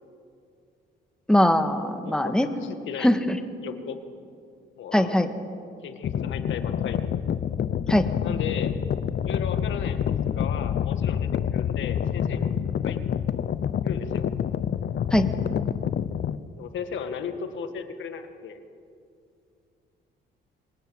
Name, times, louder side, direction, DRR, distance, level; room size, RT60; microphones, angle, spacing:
voice 1, 1.3-2.5 3.0-3.4 4.9-5.3 7.9-8.1 15.1-15.2, left 1 dB, 5° left, 7 dB, 1.9 m, -21 dB
voice 2, 2.0-3.2 3.6-4.0 4.8-5.2 5.8-7.1 8.2-8.8 9.2-10.0 10.4-12.5 12.8-13.0 13.8-14.3 16.6-18.6, left 7 dB, 75° left, 8 dB, 2.0 m, -35 dB
sound 1, 6.0-16.4, left 9 dB, 55° left, 0.8 m, -27 dB
25.5 x 19.5 x 7.9 m, 2.4 s
cardioid pair, 90°, 20 cm